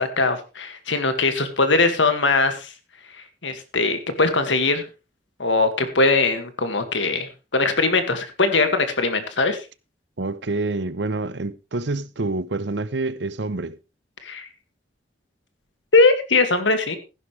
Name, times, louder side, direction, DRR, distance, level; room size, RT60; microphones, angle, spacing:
voice 1, 0.0-2.7 3.4-4.8 5.4-9.6 14.2-14.5 15.9-17.0, left 3 dB, 85° left, 2.0 m, -21 dB
voice 2, 10.2-13.8, right 2 dB, 65° right, 0.8 m, -27 dB
15.0 x 11.0 x 3.3 m
head